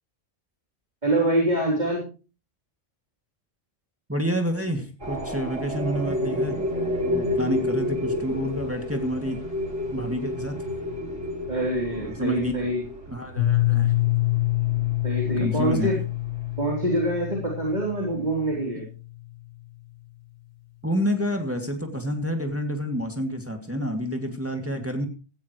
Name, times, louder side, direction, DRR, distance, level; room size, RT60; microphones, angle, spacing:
voice 1, 1.0-2.0 11.5-12.9 15.0-16.0 16.6-18.9, right 1 dB, 35° right, -2 dB, 4.0 m, -25 dB
voice 2, 4.1-6.6 7.0-9.4 9.9-10.6 12.0-12.5 13.1-13.9 15.4-15.9 20.8-25.0, equal, 10° right, 3 dB, 2.2 m, -28 dB
sound 1, 5.0-16.6, left 1 dB, 85° right, 4.7 m, -31 dB
Piano, 13.4-19.0, left 17 dB, 35° left, 2.0 m, -26 dB
17.5 x 15.0 x 3.2 m, 0.35 s
omnidirectional pair, 1.3 m